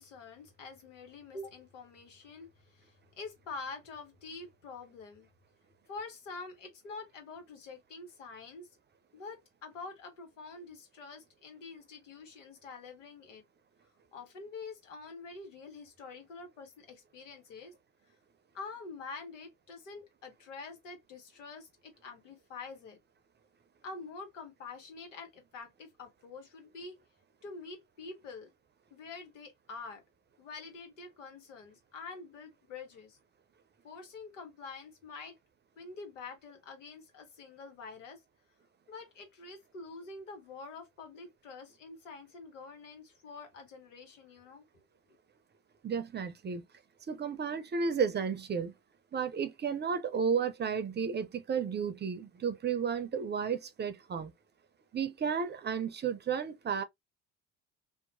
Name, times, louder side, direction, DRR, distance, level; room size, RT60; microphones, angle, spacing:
voice 1, 0.0-5.3 5.9-8.7 9.1-13.4 14.1-17.7 18.5-23.0 23.8-27.0 27.4-28.5 28.9-30.0 30.4-33.2 33.8-35.4 35.8-38.2 38.9-44.8, left 4 dB, 90° left, 1.0 m, -46 dB
voice 2, 45.8-46.6 47.1-48.7 49.1-54.3 54.9-56.8, right 6 dB, 30° right, 0.6 m, -33 dB
2.8 x 2.1 x 2.6 m
hypercardioid pair, 60°, 36 cm